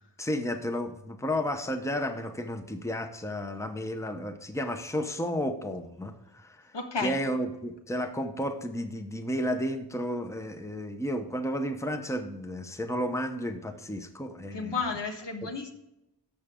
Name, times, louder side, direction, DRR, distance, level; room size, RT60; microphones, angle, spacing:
voice 1, 0.2-6.7 7.0-14.8 15.4-15.5, equal, 5° left, 7 dB, 0.9 m, -32 dB
voice 2, 6.7-7.2 14.5-15.7, left 4 dB, 80° left, 5 dB, 1.5 m, -32 dB
13.5 x 6.0 x 3.7 m, 0.89 s
wide cardioid pair, 95°, 42 cm